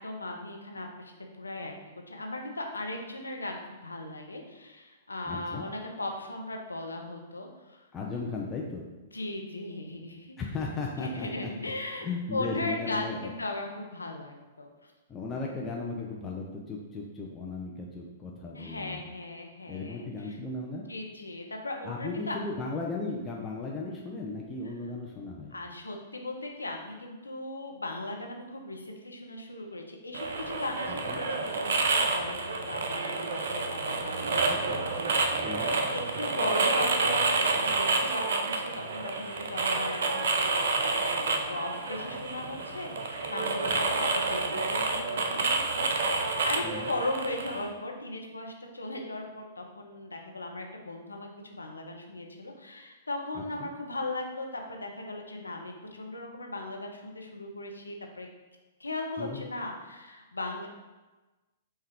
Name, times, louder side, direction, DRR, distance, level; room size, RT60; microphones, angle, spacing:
voice 1, 0.0-1.7 2.1-7.8 9.1-10.3 11.0-14.9 18.5-20.4 20.9-22.4 25.5-34.6 34.9-40.7 41.1-46.2 46.4-58.3 58.8-60.7, left 2 dB, 85° left, 2 dB, 0.6 m, -37 dB
voice 2, 5.3-5.6 7.9-8.9 10.4-11.3 11.9-13.3 15.1-19.0 19.7-20.8 21.8-25.5 30.9-31.2 34.5-34.8 35.4-35.7 43.6-43.8 46.6-46.9 53.3-53.7 59.2-59.4, left 3 dB, 20° left, -2 dB, 0.5 m, -36 dB
sound 1, 30.1-47.7, right 3 dB, 60° right, 0.5 m, -29 dB
5.4 x 2.3 x 3.5 m, 1.2 s
figure-of-eight pair, 110°, 0 cm